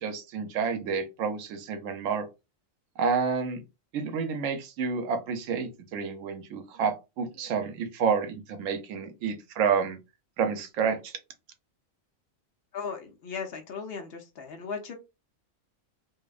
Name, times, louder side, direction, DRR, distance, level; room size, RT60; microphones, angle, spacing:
voice 1, 0.0-2.3 3.0-3.6 3.9-10.0 10.4-11.2, right 6 dB, 80° right, 1.0 m, -29 dB
voice 2, 12.7-14.9, left 5 dB, 60° left, 0.7 m, -37 dB
2.6 x 2.0 x 2.3 m
omnidirectional pair, 1.3 m